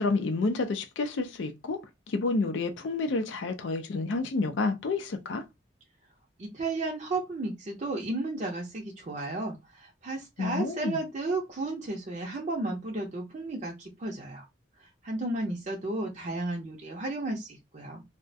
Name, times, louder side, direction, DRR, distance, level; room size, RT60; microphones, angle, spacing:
voice 1, 0.0-1.8 2.1-5.4 10.4-11.0, left 3 dB, 80° left, 0.4 m, -29 dB
voice 2, 6.4-14.5 14.8-18.0, right 2 dB, 40° right, 0.5 m, -33 dB
2.3 x 2.0 x 2.6 m
head